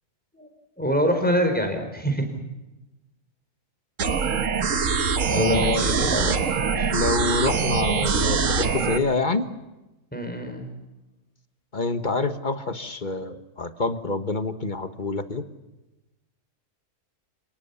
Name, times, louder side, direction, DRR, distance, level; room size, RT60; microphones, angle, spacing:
voice 1, 0.8-2.4 4.6-6.9 10.1-10.7, equal, 5° left, 4 dB, 4.8 m, -26 dB
sound 1, 4.0-9.0, right 5 dB, 55° right, 1.7 m, -23 dB
voice 2, 5.3-5.8 6.9-9.5 11.7-15.4, left 3 dB, 30° left, 10 dB, 1.5 m, -26 dB
28.5 x 19.5 x 7.1 m, 1.0 s
omnidirectional pair, 1.6 m